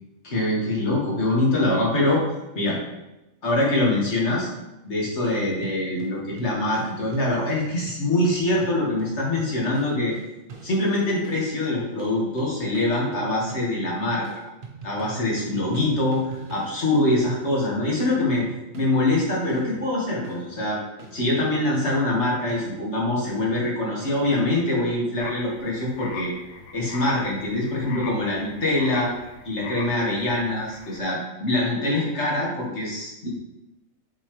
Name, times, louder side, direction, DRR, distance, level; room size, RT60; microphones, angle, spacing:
voice 1, 0.2-2.2 2.5-2.8 3.4-4.5 4.8-10.1 10.6-14.3 14.8-18.5 18.7-20.8 21.1-26.3 26.7-29.1 29.4-33.3, left 1 dB, 55° left, -3 dB, 1.9 m, -24 dB
sound 1, 5.2-11.6 12.0-14.0 14.2-24.5, right 3 dB, 45° right, 1.0 m, -44 dB
sound 2, 25.2-31.0, left 3 dB, 85° left, 1.2 m, -40 dB
7.2 x 4.2 x 3.1 m, 0.96 s
omnidirectional pair, 1.4 m